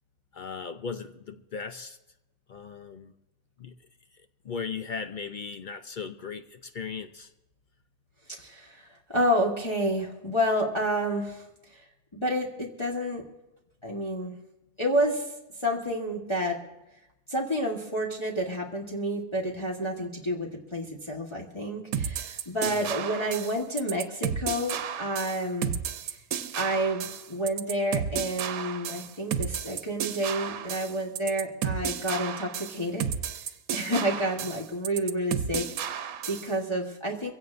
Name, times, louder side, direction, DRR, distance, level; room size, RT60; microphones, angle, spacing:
voice 1, 0.3-2.0 2.5-3.1 3.6-3.7 4.4-7.3 22.6-22.9, left 5 dB, 65° left, 0.5 m, -37 dB
voice 2, 8.3-11.4 11.7-11.8 12.1-13.2 13.8-14.4 14.8-15.3 15.6-16.6 17.3-26.1 26.6-33.1 33.7-37.3, equal, 20° left, 1.3 m, -29 dB
sound 1, 21.9-36.5, right 8 dB, 80° right, 1.2 m, -32 dB
23.5 x 16.5 x 2.5 m
omnidirectional pair, 1.5 m